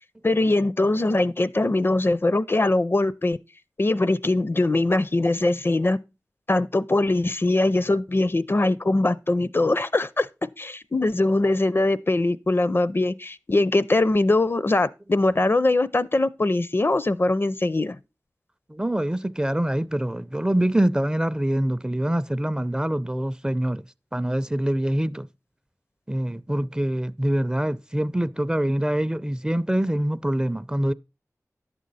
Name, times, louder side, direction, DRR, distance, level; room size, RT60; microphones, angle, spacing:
voice 1, 0.2-3.4 3.8-6.0 6.5-10.3 10.6-18.0, left 2 dB, 40° left, 0.5 m, -22 dB
voice 2, 18.7-23.8 24.1-25.3 26.1-30.9, right 1 dB, 15° right, 0.4 m, -25 dB
11.0 x 7.5 x 4.0 m
wide cardioid pair, 45°, 6 cm